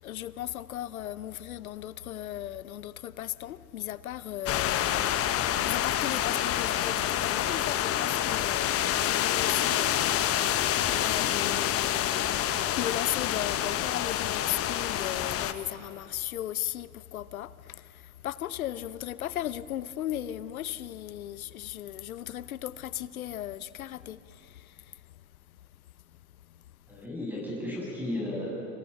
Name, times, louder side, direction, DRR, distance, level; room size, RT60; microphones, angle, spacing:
voice 1, 0.0-25.1 26.5-26.6, left 12 dB, 70° left, 0.8 m, -37 dB
sound 1, 4.5-15.5, left 11 dB, 30° left, 1.2 m, -27 dB
voice 2, 26.9-28.6, left 1 dB, 5° right, 7.8 m, -34 dB
29.5 x 26.5 x 5.7 m
figure-of-eight pair, 85°, 43 cm